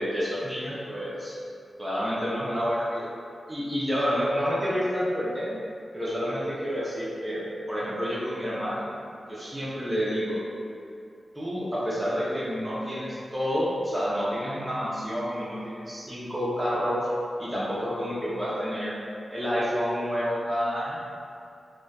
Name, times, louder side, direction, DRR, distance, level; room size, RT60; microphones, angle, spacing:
voice 1, 0.0-1.4 1.8-3.1 3.5-5.6 5.9-7.4 7.7-8.9 9.3-10.4 11.4-17.1 17.4-18.9 19.3-21.0, equal, 20° right, -8 dB, 0.6 m, -29 dB
2.6 x 2.2 x 2.3 m, 2.4 s
cardioid pair, 50°, 0 cm